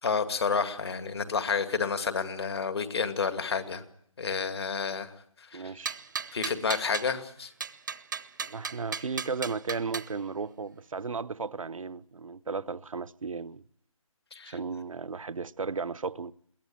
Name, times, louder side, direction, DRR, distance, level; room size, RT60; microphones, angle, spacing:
voice 1, 0.0-3.8 4.2-5.1 5.4-5.6 6.3-7.5 14.3-14.5, left 5 dB, 45° left, 2.2 m, -30 dB
voice 2, 5.5-6.0 8.4-13.6 14.4-16.3, right 4 dB, 70° right, 0.8 m, -35 dB
sound 1, 5.8-7.1 7.6-10.1, right 6 dB, 35° right, 0.8 m, -36 dB
22.5 x 17.5 x 9.0 m
figure-of-eight pair, 165°, 18 cm